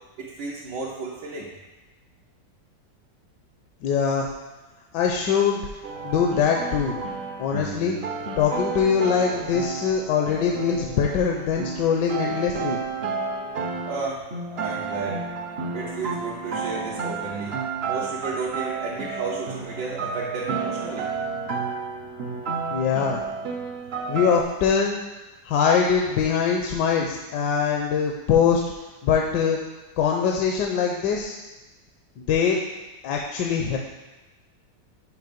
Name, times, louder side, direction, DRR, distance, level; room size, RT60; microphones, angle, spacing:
voice 1, 0.2-1.5 13.9-14.2 14.5-15.2 15.7-17.5 17.8-21.1, right 4 dB, 85° right, -6 dB, 1.6 m, -32 dB
voice 2, 3.8-4.3 4.9-5.6 6.0-7.0 7.4-8.0 8.4-12.8 22.7-23.2 24.1-25.0 25.4-28.6 29.0-29.6 30.0-31.4 32.2-32.6 33.0-33.8, left 6 dB, 80° left, 1 dB, 1.3 m, -22 dB
sound 1, 5.8-24.4, right 5 dB, 55° right, 0.7 m, -31 dB
6.6 x 5.0 x 5.2 m, 1.1 s
omnidirectional pair, 1.9 m